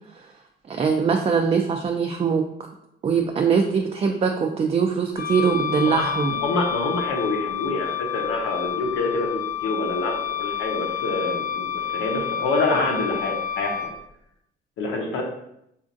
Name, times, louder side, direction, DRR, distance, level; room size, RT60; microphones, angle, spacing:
voice 1, 0.7-2.4 3.0-6.3, right 6 dB, 30° right, 3 dB, 0.3 m, -22 dB
Wind instrument woodwind instrument, 5.1-13.9, left 9 dB, 60° left, 0.5 m, -29 dB
voice 2, 5.8-13.7 14.8-15.2, left 2 dB, 90° left, 0 dB, 0.8 m, -26 dB
4.3 x 2.5 x 2.5 m, 0.79 s
cardioid pair, 90°, 20 cm